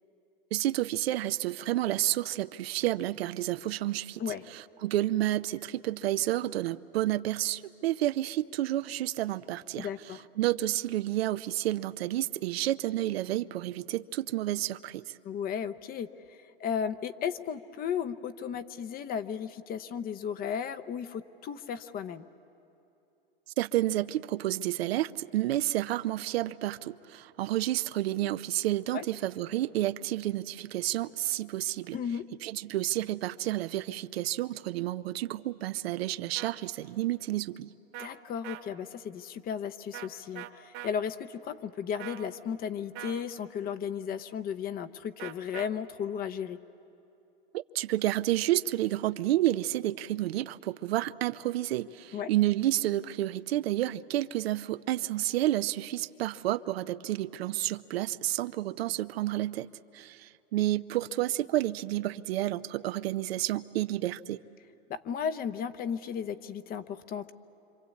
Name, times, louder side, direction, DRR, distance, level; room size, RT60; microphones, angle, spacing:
voice 1, 0.5-4.2 4.5-9.9 10.4-15.1 23.6-32.0 32.4-37.7 47.5-59.7 59.9-64.4, right 14 dB, 80° right, 0.7 m, -30 dB
voice 2, 9.8-10.2 15.2-22.3 28.9-29.1 31.9-32.3 38.0-46.6 52.1-52.3 64.9-67.3, left 7 dB, 30° left, 0.8 m, -35 dB
sound 1, 36.4-36.5 37.9-38.1 38.4-38.6 39.9-40.1 40.4-40.9 42.0-42.3 43.0-43.2 45.2-45.7, right 14 dB, 45° right, 1.3 m, -41 dB
26.5 x 25.5 x 8.4 m
hypercardioid pair, 125°, 30 cm